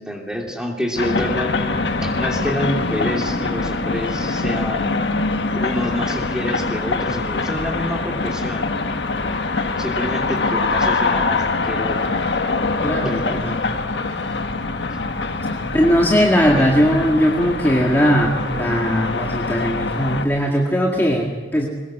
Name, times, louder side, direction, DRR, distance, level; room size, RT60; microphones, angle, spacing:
voice 1, 0.0-5.0 5.5-8.7 9.3-9.4 9.8-12.1 13.0-13.2 14.9-15.0 16.6-16.7, equal, 5° right, 1 dB, 3.0 m, -28 dB
sound 1, 1.0-20.3, left 3 dB, 90° left, 1.4 m, -23 dB
voice 2, 12.8-13.6 15.7-21.7, equal, 10° left, -2 dB, 2.0 m, -19 dB
22.5 x 20.0 x 7.5 m, 1.3 s
head